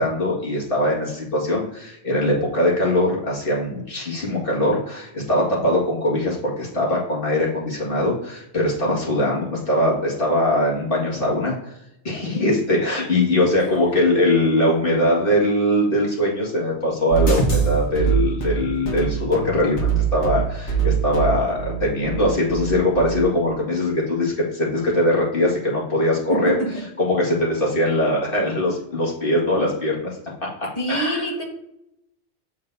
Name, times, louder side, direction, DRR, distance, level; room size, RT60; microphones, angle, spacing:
voice 1, 0.0-11.7 12.0-26.5 27.0-30.1 30.6-31.3, left 1 dB, 50° left, -4 dB, 2.1 m, -21 dB
sound 1, 17.1-23.2, right 6 dB, 75° left, 1.6 m, -23 dB
voice 2, 26.3-26.7 30.7-31.4, right 1 dB, 35° left, -1 dB, 1.6 m, -26 dB
7.4 x 7.0 x 2.7 m, 0.81 s
omnidirectional pair, 1.2 m